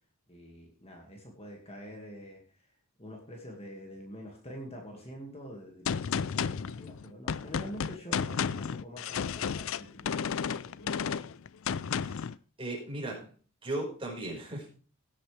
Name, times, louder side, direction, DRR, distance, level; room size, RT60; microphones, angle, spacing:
voice 1, 0.3-2.7 3.0-11.3, equal, 25° left, 1 dB, 2.1 m, -46 dB
Gunshot gunfire, 5.8-12.3, left 7 dB, 65° left, 0.4 m, -32 dB
voice 2, 11.9-12.3 12.6-13.3 13.6-14.7, right 2 dB, 25° right, -1 dB, 5.1 m, -37 dB
17.0 x 8.7 x 3.4 m, 0.38 s
head